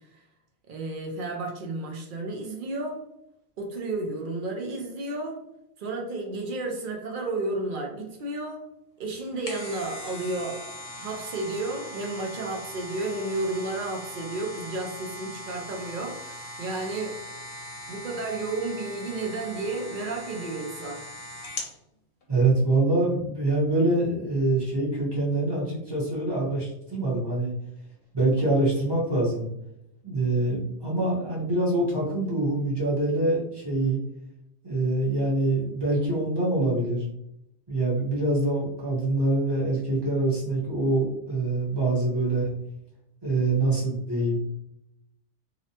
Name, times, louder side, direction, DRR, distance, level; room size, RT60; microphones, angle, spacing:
voice 1, 0.7-3.0 3.6-5.4 5.8-8.6 9.0-10.6 10.9-17.2 17.9-21.0, right 2 dB, 60° right, 2 dB, 0.6 m, -32 dB
sound 1, 9.2-21.8 22.2-22.3, left 1 dB, 65° left, 0.9 m, -40 dB
voice 2, 22.3-27.5 28.1-29.5 30.0-34.0 34.6-37.0 37.7-42.5 43.2-44.4, right 2 dB, 25° right, -6 dB, 0.7 m, -25 dB
2.8 x 2.1 x 2.7 m, 0.80 s
omnidirectional pair, 1.1 m